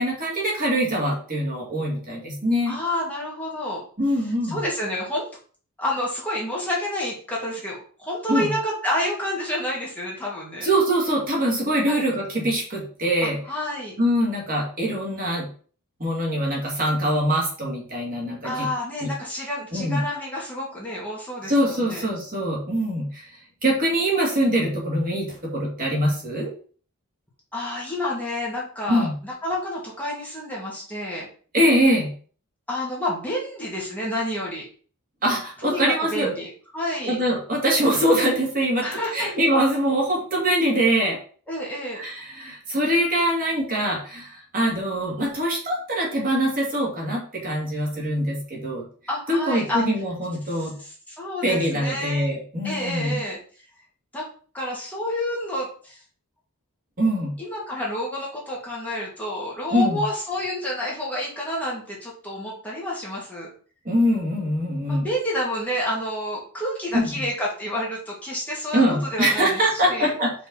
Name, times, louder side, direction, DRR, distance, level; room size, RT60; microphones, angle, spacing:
voice 1, 0.0-2.8 4.0-4.6 8.3-8.5 10.6-13.4 14.0-15.5 16.0-18.7 19.0-19.1 19.7-20.0 21.5-23.3 23.6-26.5 28.9-29.1 31.5-32.1 35.2-36.3 37.0-41.2 42.0-48.8 49.3-50.7 51.4-53.2 57.0-57.3 59.7-60.0 63.8-65.1 66.9-67.0 68.7-70.3, equal, 40° right, -3 dB, 2.4 m, -23 dB
voice 2, 2.7-3.8 4.5-5.3 5.8-10.7 11.9-12.0 13.5-13.9 18.4-22.1 27.5-31.3 32.7-34.7 35.6-37.2 38.8-39.3 41.5-42.0 49.1-49.9 50.6-52.3 52.6-53.4 54.1-54.2 54.5-56.0 57.4-63.5 64.9-68.8 69.1-69.6 69.9-70.1, left 1 dB, 5° left, -5 dB, 2.2 m, -29 dB
5.9 x 5.3 x 4.2 m, 0.42 s
head